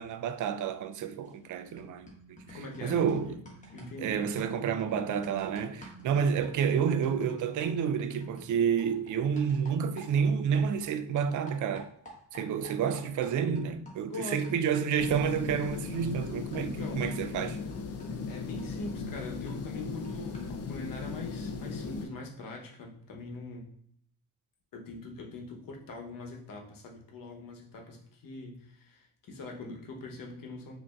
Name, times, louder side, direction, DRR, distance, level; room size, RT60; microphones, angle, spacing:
voice 1, 0.0-3.4 4.0-11.9 12.3-17.6, right 7 dB, 55° right, 0.4 m, -29 dB
sound 1, 1.3-1.5 1.8-10.9 11.2-20.7, right 1 dB, 20° left, 1.1 m, -51 dB
voice 2, 2.5-3.3 3.7-4.2 14.1-14.7 16.5-17.1 18.1-23.7 24.7-30.8, left 2 dB, 65° left, 0.9 m, -42 dB
sound 2, 15.0-22.1, left 5 dB, 45° left, 0.5 m, -37 dB
5.1 x 2.7 x 2.3 m
cardioid pair, 125°, 37 cm